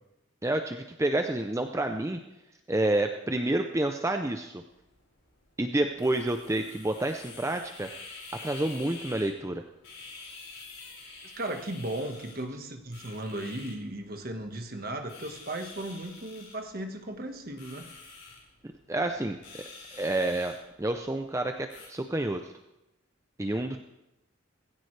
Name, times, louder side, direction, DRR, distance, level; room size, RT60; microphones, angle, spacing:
voice 1, 0.4-2.2 2.7-4.6 5.6-7.9 8.4-9.6 18.9-19.4 19.9-22.5 23.4-23.8, right 1 dB, 15° right, 6 dB, 0.5 m, -29 dB
sound 1, 4.7-21.9, left 4 dB, 65° left, 5.5 m, -48 dB
voice 2, 11.2-17.8, right 1 dB, 45° right, 5 dB, 1.5 m, -36 dB
19.5 x 16.0 x 3.3 m, 0.93 s
head